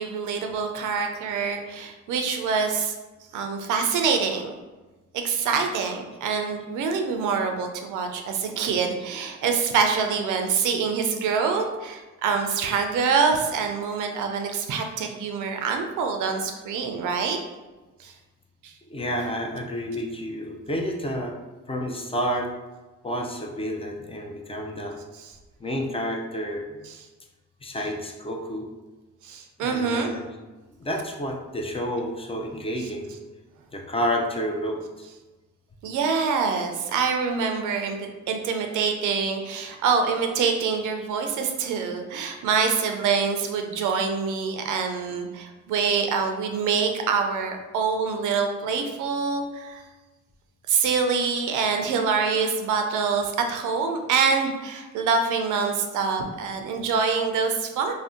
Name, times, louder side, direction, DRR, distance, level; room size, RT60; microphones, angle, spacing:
voice 1, 0.0-3.0 3.3-4.5 5.1-17.4 18.0-18.1 18.6-18.7 25.1-25.3 26.8-27.0 29.2-30.1 35.8-49.8 50.7-57.9, right 5 dB, 80° right, 4 dB, 0.5 m, -25 dB
voice 2, 18.9-21.4 21.7-22.5 23.0-25.0 25.6-26.8 27.6-28.7 29.6-30.3 30.8-33.1 33.7-35.1 54.4-54.5, equal, 20° left, 1 dB, 0.4 m, -30 dB
2.6 x 2.0 x 3.6 m, 1.2 s
cardioid pair, 90°, 30 cm